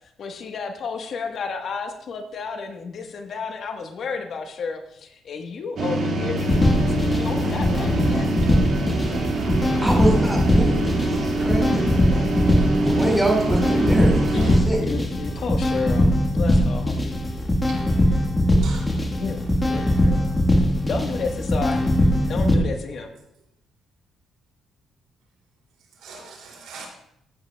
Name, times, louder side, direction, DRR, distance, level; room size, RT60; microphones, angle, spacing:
voice 1, 0.2-8.3 14.3-16.9 19.2-20.3 20.9-21.8 22.3-23.1, left 5 dB, 60° left, 4 dB, 1.2 m, -32 dB
sound 1, 5.8-14.6, right 2 dB, 65° right, 2.0 m, -25 dB
sound 2, 6.4-22.6, left 1 dB, 20° left, 1.4 m, -21 dB
voice 2, 9.8-12.0 12.8-14.8, right 1 dB, 5° right, -1 dB, 4.0 m, -24 dB
voice 3, 18.6-19.0 20.3-20.5 26.0-26.9, right 4 dB, 85° right, 0 dB, 2.6 m, -39 dB
15.0 x 8.4 x 2.3 m, 0.76 s
cardioid pair, 90°, 0 cm